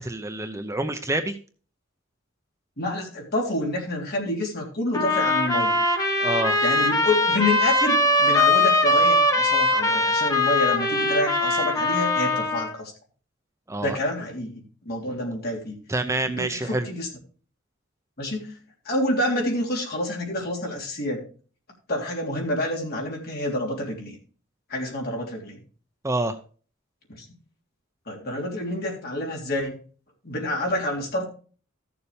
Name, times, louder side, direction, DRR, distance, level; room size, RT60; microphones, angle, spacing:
voice 1, 0.0-1.4 6.2-6.6 13.7-14.0 15.9-16.9 26.0-26.4, right 2 dB, 15° right, 7 dB, 0.6 m, -27 dB
voice 2, 2.8-5.8 6.6-12.9 13.8-15.8 16.2-17.1 18.2-18.6 18.8-21.2 21.9-24.2 24.7-25.6 27.1-27.3 28.1-29.8 30.2-31.3, left 1 dB, 50° left, 0 dB, 3.3 m, -28 dB
sound 1, 4.9-12.7, left 2 dB, 15° left, 1.3 m, -21 dB
14.5 x 7.0 x 3.4 m, 0.39 s
head